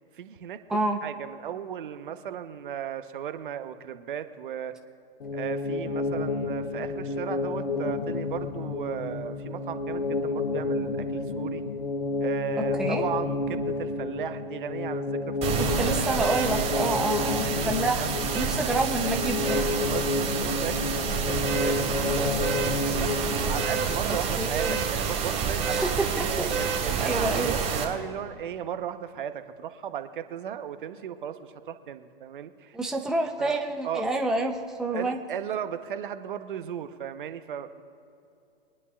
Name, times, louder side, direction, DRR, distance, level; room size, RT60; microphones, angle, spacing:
voice 1, 0.2-4.7 5.3-11.6 12.2-16.2 17.2-18.1 18.5-18.6 19.0-19.1 19.9-23.1 23.5-25.9 26.3-32.8 33.4-33.6 33.8-34.1 34.9-37.8, right 9 dB, 60° right, 10 dB, 1.0 m, -36 dB
sound 1, 5.2-24.0, left 3 dB, 75° left, 1.0 m, -30 dB
sound 2, 15.4-27.8, right 6 dB, 20° right, 2.5 m, -28 dB
voice 2, 15.6-19.7 24.4-24.8 25.7-26.5 27.0-27.5 32.7-35.2, right 2 dB, ahead, 2 dB, 0.7 m, -28 dB
23.0 x 11.0 x 2.4 m, 2.7 s
hypercardioid pair, 125°, 29 cm